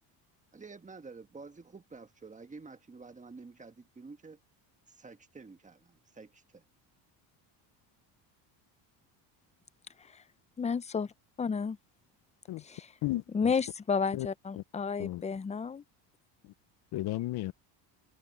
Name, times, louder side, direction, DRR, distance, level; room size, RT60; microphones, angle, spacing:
voice 1, 0.5-4.4 4.9-6.6, right 4 dB, 15° right, 1.4 m, -50 dB
voice 2, 10.6-11.1 11.4-11.8 12.7-12.8 13.3-15.8, left 5 dB, 15° left, 0.5 m, -31 dB
voice 3, 13.0-13.5 14.1-14.3 14.6-14.7 15.0-15.2 16.4-16.5 16.9-17.5, left 16 dB, 55° left, 0.7 m, -34 dB
cardioid pair, 115°, 46 cm